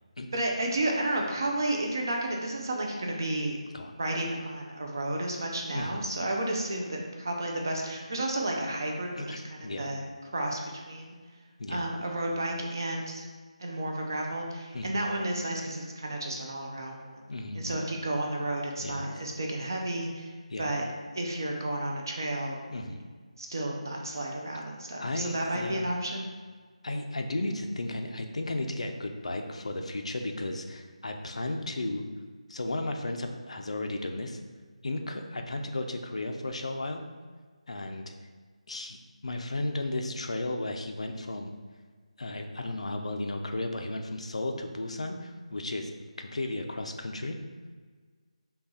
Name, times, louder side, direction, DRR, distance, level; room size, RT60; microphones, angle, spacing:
voice 1, 0.3-3.6 4.0-9.4 9.8-10.0 10.3-11.2 11.7-13.2 13.6-17.2 17.5-20.3 20.6-20.8 21.1-22.6 23.4-26.3, right 1 dB, 30° right, 0 dB, 0.5 m, -32 dB
voice 2, 5.7-6.1 9.1-9.9 11.6-11.9 14.7-15.0 17.3-17.9 18.8-19.2 20.5-20.8 22.7-23.0 25.0-25.9 26.8-32.1 32.5-34.4 34.8-37.0 37.7-38.1 38.7-39.0 39.2-41.5 42.2-45.9 46.2-47.4, left 2 dB, 60° left, 4 dB, 0.5 m, -34 dB
5.6 x 2.3 x 4.0 m, 1.5 s
figure-of-eight pair, 180°, 4 cm